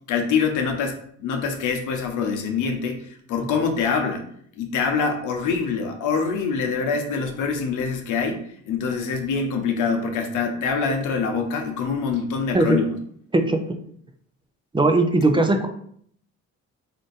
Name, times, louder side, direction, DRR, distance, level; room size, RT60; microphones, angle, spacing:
voice 1, 0.1-4.2 4.6-13.0 15.3-15.4, left 5 dB, 85° left, 4 dB, 0.8 m, -25 dB
voice 2, 13.3-13.8 14.7-15.7, right 2 dB, 15° right, 5 dB, 0.4 m, -19 dB
3.7 x 2.5 x 3.9 m, 0.64 s
cardioid pair, 90°, 30 cm